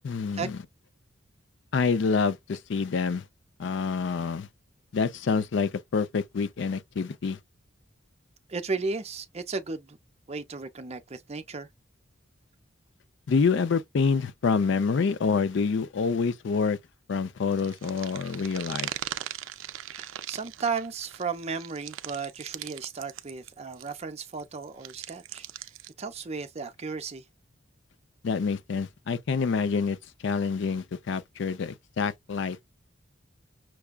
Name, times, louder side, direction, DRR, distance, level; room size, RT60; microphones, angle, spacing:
voice 1, 0.0-0.6 1.7-3.2 3.6-4.5 4.9-7.4 13.3-16.8 17.1-18.9 28.2-30.0 30.2-32.6, left 5 dB, 65° left, 0.4 m, -27 dB
voice 2, 8.5-10.0 10.3-11.7 19.9-25.7 26.0-27.2, right 4 dB, 35° right, 0.6 m, -34 dB
sound 1, 17.5-24.0 24.3-25.9, right 12 dB, 75° right, 0.4 m, -39 dB
5.9 x 2.2 x 2.3 m
head